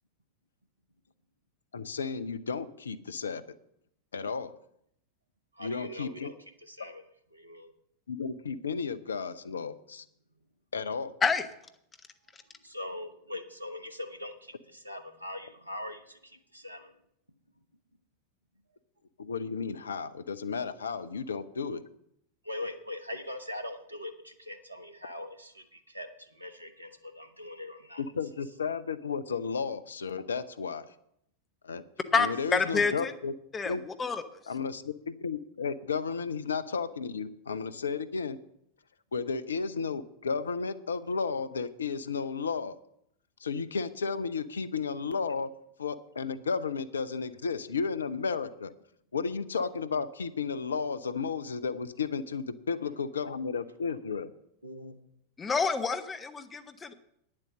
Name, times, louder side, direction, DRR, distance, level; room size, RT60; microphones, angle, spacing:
voice 1, 1.7-3.4 4.1-4.5 5.6-6.3 8.1-10.0 10.7-11.1 19.2-21.8 28.0-30.8 31.6-31.8 32.2-33.3 33.7-33.8 34.5-38.4 39.1-42.7 43.4-45.5 45.8-48.7 49.1-54.3, left 5 dB, 70° left, 13 dB, 0.7 m, -33 dB
voice 2, 5.5-7.0 7.3-7.7 12.4-16.9 22.4-28.0 32.8-33.0 52.7-52.8 53.8-53.9 54.6-55.0, left 1 dB, 85° right, 9 dB, 1.1 m, -42 dB
voice 3, 32.1-33.1 33.5-34.2 55.4-56.9, left 5 dB, 20° left, 10 dB, 0.9 m, -28 dB
9.8 x 7.6 x 7.6 m, 0.74 s
figure-of-eight pair, 90°, 0 cm